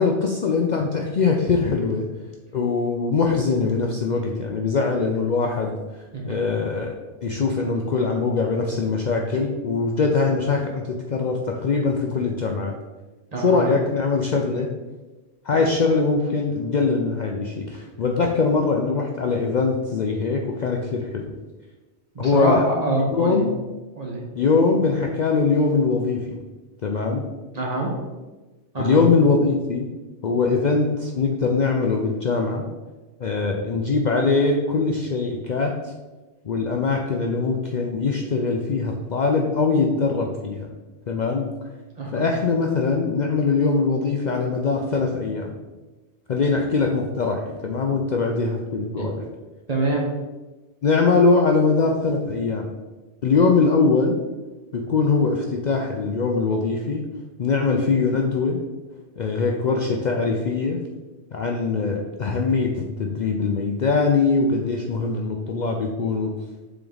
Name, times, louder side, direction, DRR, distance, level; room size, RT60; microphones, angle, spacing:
voice 1, 0.0-2.1 2.5-12.7 13.4-14.7 15.4-21.3 22.2-22.6 23.1-23.5 24.3-26.4 26.8-27.3 28.8-29.9 30.2-32.6 33.2-35.9 36.4-40.7 41.1-41.5 42.1-45.5 46.3-49.2 50.8-52.7 53.2-54.2 54.7-57.1 57.4-58.6 59.2-60.8 61.3-66.3, left 4 dB, 55° left, 2 dB, 0.5 m, -22 dB
voice 2, 13.3-13.7 22.1-23.4 24.0-24.2 27.5-27.9 28.7-29.0 42.0-42.3 49.0-49.1 49.7-50.1, right 2 dB, 35° right, -2 dB, 1.2 m, -25 dB
7.1 x 3.4 x 3.9 m, 1.2 s
omnidirectional pair, 1.2 m